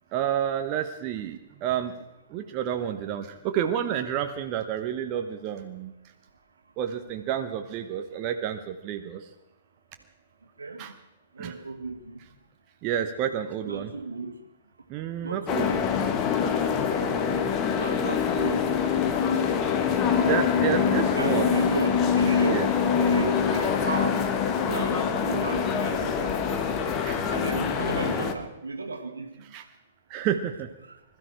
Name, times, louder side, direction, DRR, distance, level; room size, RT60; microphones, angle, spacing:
voice 1, 0.1-1.9 2.3-5.9 6.8-9.3 10.8-10.9 11.4-11.5 12.8-13.9 14.9-15.7 20.2-21.6 22.5-22.7 27.0-27.2 29.5-29.6 30.1-30.7, right 9 dB, 30° right, 6 dB, 0.9 m, -29 dB
voice 2, 10.6-10.9 11.4-12.2 13.7-14.4 15.2-15.9 17.8-18.8 19.2-19.8 20.1-20.2 21.1-22.7 23.0-24.3 24.6-26.7 27.3-29.3 30.8-31.0, right 3 dB, 75° right, 4 dB, 1.8 m, -34 dB
sound 1, 15.5-28.3, left 7 dB, 25° left, 1.3 m, -25 dB
20.5 x 13.0 x 4.6 m, 0.95 s
figure-of-eight pair, 115°, 0 cm